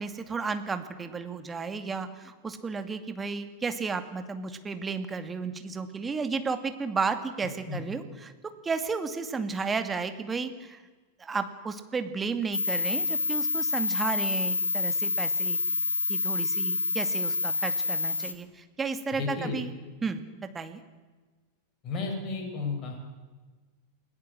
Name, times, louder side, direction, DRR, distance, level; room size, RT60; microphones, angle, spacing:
voice 1, 0.0-8.3 8.6-10.8 11.2-15.6 16.1-19.7 20.0-20.2 20.5-20.8, right 4 dB, 15° right, 8 dB, 2.3 m, -33 dB
sound 1, 12.5-18.3, left 4 dB, 80° left, 1.9 m, -28 dB
voice 2, 19.1-19.6 21.8-23.0, left 4 dB, 30° left, 2 dB, 7.6 m, -33 dB
29.5 x 20.5 x 7.7 m, 1.3 s
figure-of-eight pair, 90°, 0 cm